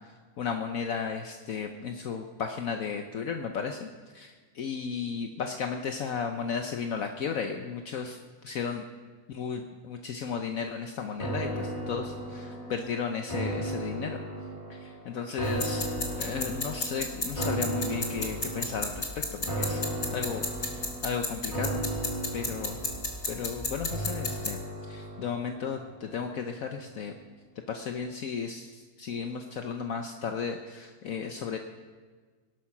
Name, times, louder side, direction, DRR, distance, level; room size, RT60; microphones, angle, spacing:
voice 1, 0.4-8.8 9.3-14.2 14.7-15.9 16.2-19.8 20.1-21.8 22.3-22.8 23.3-24.6 24.9-27.2 27.7-31.6, left 6 dB, 65° left, 5 dB, 1.2 m, -34 dB
sound 1, 11.2-26.5 26.9-27.0, right 1 dB, 25° left, 3.8 m, -36 dB
sound 2, 15.4-24.5, left 3 dB, 45° left, 2.1 m, -34 dB
18.0 x 12.0 x 6.0 m, 1.5 s
omnidirectional pair, 1.6 m